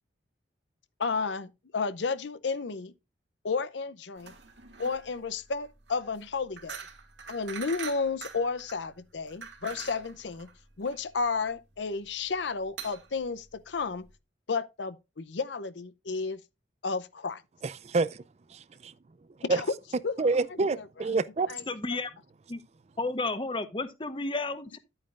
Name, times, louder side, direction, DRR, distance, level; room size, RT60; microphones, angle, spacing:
voice 1, 1.0-2.9 3.4-4.3 4.8-6.8 7.3-10.5 10.8-14.1 14.5-16.4 16.8-17.4 19.4-19.7 20.0-20.2 20.7-20.8 21.5-21.6, left 4 dB, 70° left, 0.6 m, -32 dB
sound 1, 4.2-14.1, right 6 dB, 70° right, 2.2 m, -45 dB
voice 2, 17.6-18.2 18.5-18.9 19.5-19.6 20.2-21.5, right 3 dB, 35° right, 0.4 m, -27 dB
voice 3, 21.7-22.1 22.5-22.6 23.0-24.8, left 3 dB, 25° left, 1.0 m, -32 dB
11.0 x 8.8 x 2.5 m
head